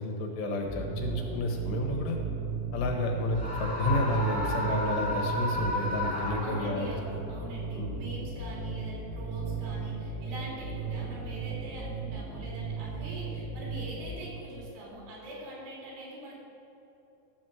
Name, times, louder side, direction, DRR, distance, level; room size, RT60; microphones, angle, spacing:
voice 1, 0.0-2.2 2.7-6.9 7.7-8.0, left 1 dB, 75° left, 1 dB, 3.3 m, -31 dB
sound 1, 0.6-14.2, right 4 dB, 40° left, 1.7 m, -36 dB
Screaming, 3.3-7.0, left 1 dB, 20° right, 0.8 m, -33 dB
voice 2, 6.4-16.4, right 1 dB, 80° right, -5 dB, 5.5 m, -43 dB
13.0 x 6.2 x 7.7 m, 3.0 s
omnidirectional pair, 5.0 m